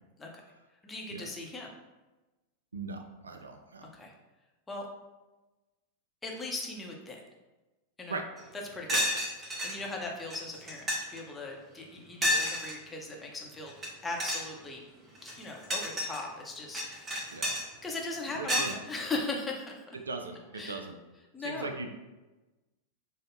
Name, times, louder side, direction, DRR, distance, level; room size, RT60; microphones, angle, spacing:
voice 1, 0.8-1.7 3.9-4.1 4.7-4.9 6.2-7.2 8.0-8.2 8.5-9.1 9.4-10.8 11.1-13.7 14.0-14.8 15.2-20.0 20.5-20.8 21.3-21.7, left 3 dB, 15° left, -1 dB, 0.7 m, -39 dB
voice 2, 2.7-3.9 8.1-8.2 8.9-9.0 17.3-17.5 18.4-18.7 20.1-20.9 21.4-21.9, right 3 dB, 75° right, 6 dB, 0.3 m, -38 dB
sound 1, 8.4-8.5 8.9-9.8 10.3-10.4 10.7-11.2 12.2-12.7 13.7-13.9 14.2-14.5 15.2-16.2 16.7-17.6 18.5-18.7, left 1 dB, 20° right, 0.6 m, -30 dB
5.0 x 2.1 x 2.6 m, 1.1 s
figure-of-eight pair, 90°, 0 cm